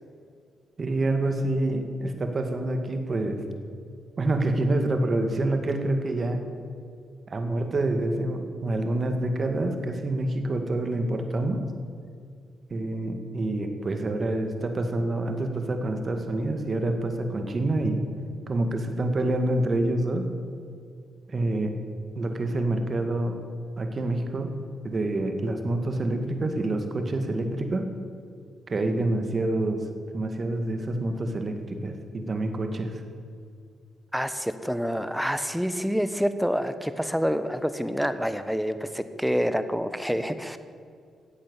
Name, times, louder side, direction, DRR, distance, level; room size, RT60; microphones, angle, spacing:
voice 1, 0.8-3.4 4.2-6.4 7.3-11.6 12.7-18.0 18.5-20.3 21.3-21.7 22.2-23.4 23.8-24.5 24.8-27.9 28.7-29.8 30.1-33.0, right 2 dB, 45° right, 6 dB, 2.1 m, -27 dB
voice 2, 34.1-40.6, equal, ahead, 11 dB, 1.1 m, -27 dB
15.0 x 8.5 x 8.2 m, 2.3 s
supercardioid pair, 60°, 0 cm